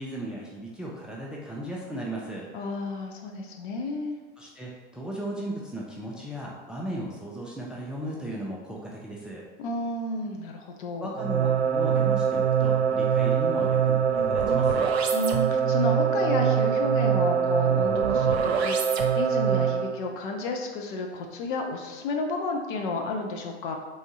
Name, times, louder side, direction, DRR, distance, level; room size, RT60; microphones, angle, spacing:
voice 1, 0.0-2.5 4.4-9.4 11.0-14.9, right 1 dB, ahead, -3 dB, 0.5 m, -36 dB
voice 2, 2.5-4.2 9.6-11.1 15.1-23.8, left 2 dB, 50° left, 2 dB, 0.8 m, -31 dB
sound 1, 11.1-19.9, right 7 dB, 70° right, 0.6 m, -23 dB
3.5 x 3.5 x 4.1 m, 1.3 s
figure-of-eight pair, 90°, 33 cm